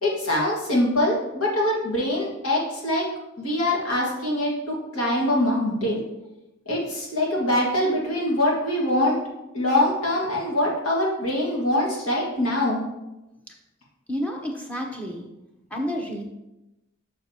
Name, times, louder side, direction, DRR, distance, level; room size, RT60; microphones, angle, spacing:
voice 1, 0.0-3.0 3.4-6.0 6.7-9.2 9.5-12.8, left 1 dB, 90° left, -3 dB, 1.9 m, -23 dB
voice 2, 14.1-15.3 15.7-16.2, equal, 5° left, 0 dB, 0.8 m, -30 dB
6.6 x 6.2 x 2.9 m, 0.96 s
head